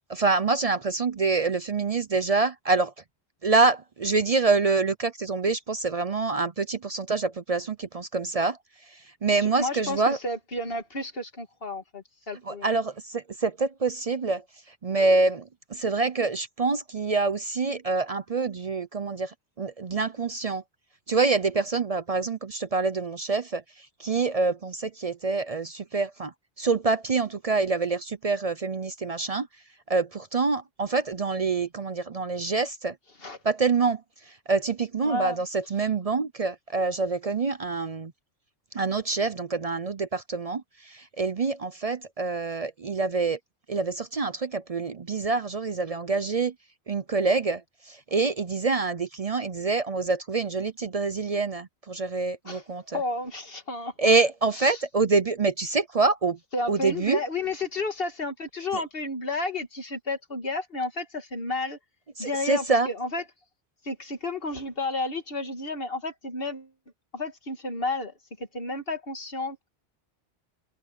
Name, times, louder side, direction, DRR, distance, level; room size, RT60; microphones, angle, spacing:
voice 1, 0.1-2.9 3.4-8.6 9.2-10.2 12.4-14.4 14.8-20.6 21.1-23.6 24.0-29.5 29.9-32.9 33.4-34.0 34.5-38.1 38.7-43.4 43.7-46.5 46.9-47.6 47.9-53.0 54.0-56.4 56.7-57.2 58.7-58.8 62.2-62.9, right 4 dB, 40° right, 0.6 m, -26 dB
voice 2, 9.4-12.8 33.2-33.4 35.0-35.4 52.4-54.8 56.5-61.8 62.2-63.2 63.8-66.7 67.1-69.6, left 2 dB, 55° left, 2.4 m, -32 dB
open air
omnidirectional pair, 1.2 m